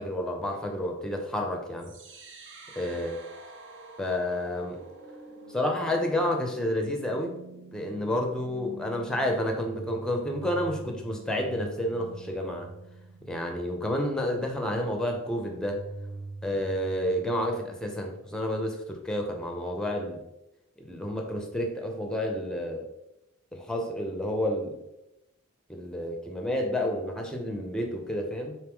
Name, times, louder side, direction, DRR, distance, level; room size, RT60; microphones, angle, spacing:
voice 1, 0.0-1.9 2.8-3.2 4.0-4.8 5.5-7.3 7.7-12.7 13.3-15.8 16.4-20.2 20.9-22.9 23.5-24.8 25.7-28.6, left 1 dB, 5° left, 2 dB, 0.6 m, -30 dB
sound 1, 1.8-17.8, right 3 dB, 60° right, 0.7 m, -46 dB
4.6 x 3.0 x 3.5 m, 0.90 s
head